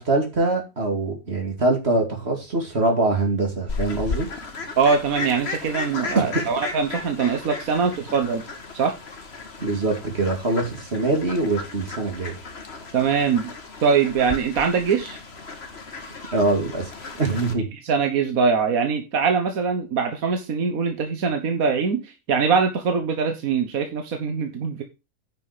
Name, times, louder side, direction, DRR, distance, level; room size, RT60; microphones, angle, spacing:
voice 1, 0.0-4.3 6.1-6.4 9.6-12.3 16.3-16.9 17.2-17.7, right 2 dB, 45° right, 2 dB, 2.6 m, -23 dB
Fowl, 3.7-17.5, left 4 dB, 45° left, 1.7 m, -35 dB
voice 2, 4.8-8.4 8.7-8.9 12.9-13.5 13.8-15.2 17.8-24.8, right 5 dB, 70° right, 5 dB, 1.6 m, -22 dB
9.6 x 5.9 x 4.9 m, 0.27 s
omnidirectional pair, 1.6 m